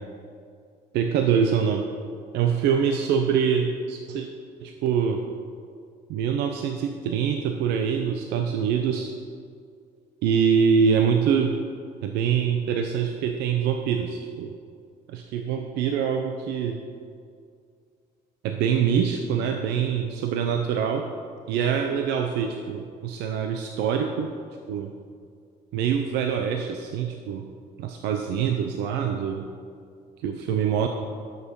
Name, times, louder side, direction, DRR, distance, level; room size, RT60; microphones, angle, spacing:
voice 1, 0.9-1.9 2.3-4.3 4.6-5.2 6.1-9.1 10.2-11.6 12.0-14.5 15.1-16.8 18.4-21.0 21.5-24.3 24.7-24.9 25.7-27.5 27.8-29.5 30.2-30.9, right 7 dB, 90° right, 4 dB, 0.7 m, -24 dB
11.5 x 6.7 x 5.3 m, 2.2 s
cardioid pair, 110°, 17 cm